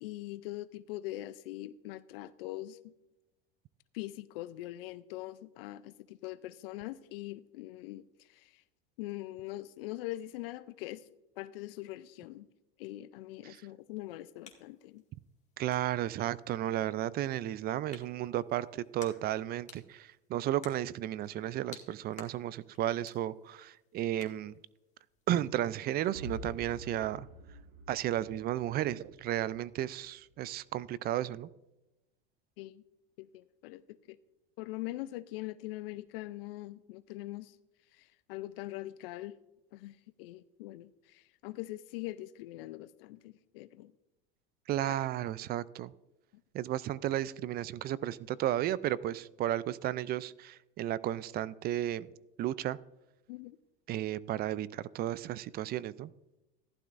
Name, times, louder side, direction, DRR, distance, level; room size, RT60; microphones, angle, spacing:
voice 1, 0.0-2.9 3.9-8.6 9.0-11.1 11.4-12.5 12.8-15.0 32.6-32.8 33.2-33.8 34.1-34.2 34.6-37.6 37.9-39.4 39.7-43.9 44.9-45.0 53.3-53.6, left 17 dB, 70° left, 15 dB, 0.5 m, -42 dB
sound 1, 13.8-27.0, left 6 dB, 25° left, 2.1 m, -58 dB
voice 2, 15.6-24.5 25.3-27.3 27.9-31.5 44.7-45.9 46.5-52.1 52.4-52.8 53.9-56.1, right 13 dB, 35° right, 20 dB, 0.4 m, -33 dB
sound 2, 26.1-30.0, equal, 70° right, 1.8 m, -48 dB
15.0 x 11.5 x 2.5 m, 0.98 s
supercardioid pair, 110°, 29 cm